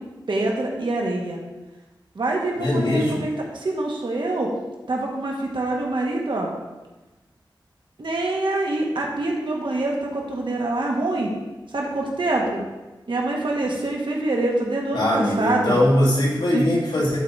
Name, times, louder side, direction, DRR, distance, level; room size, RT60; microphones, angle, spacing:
voice 1, 0.3-1.4 2.1-4.5 4.9-6.5 8.0-11.3 11.7-12.6 13.1-15.8 16.5-16.7, right 2 dB, 70° right, -1 dB, 1.7 m, -25 dB
voice 2, 2.6-3.2 14.9-17.2, left 1 dB, 85° left, -5 dB, 2.6 m, -21 dB
11.0 x 4.1 x 4.7 m, 1.1 s
wide cardioid pair, 65°, 8 cm